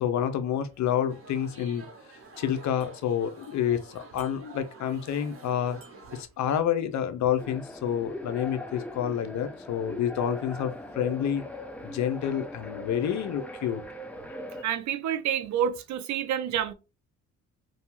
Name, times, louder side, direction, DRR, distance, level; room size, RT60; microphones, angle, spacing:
voice 1, 0.0-1.9 2.4-5.8 6.1-11.4 11.8-13.8, left 9 dB, 70° left, 0.5 m, -28 dB
sound 1, 1.1-6.2, right 3 dB, 50° right, 0.9 m, -48 dB
sound 2, 7.4-14.6, left 1 dB, 5° left, 0.4 m, -40 dB
voice 2, 14.6-16.7, right 9 dB, 70° right, 0.5 m, -28 dB
2.6 x 2.2 x 2.9 m
cardioid pair, 90°, 30 cm